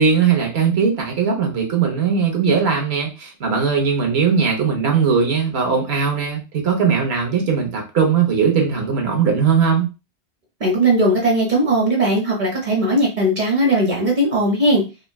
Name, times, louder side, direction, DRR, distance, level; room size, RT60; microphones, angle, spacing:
voice 1, 0.0-9.9, right 6 dB, 70° right, 1 dB, 1.1 m, -19 dB
voice 2, 10.6-14.8, right 1 dB, 45° right, -2 dB, 1.0 m, -18 dB
3.6 x 2.1 x 2.2 m, 0.29 s
omnidirectional pair, 1.1 m